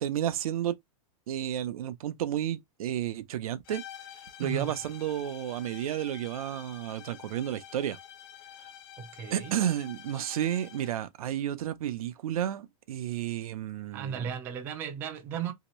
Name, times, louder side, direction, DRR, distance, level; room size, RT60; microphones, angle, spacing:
voice 1, 0.0-0.8 1.3-3.8 4.4-8.0 9.3-14.3, right 11 dB, 85° right, 0.6 m, -32 dB
sound 1, 3.6-11.1, left 11 dB, 40° left, 0.6 m, -48 dB
voice 2, 4.4-4.7 9.0-9.5 13.9-15.5, right 7 dB, 10° right, 0.3 m, -35 dB
3.0 x 2.8 x 2.9 m
supercardioid pair, 175°, 18 cm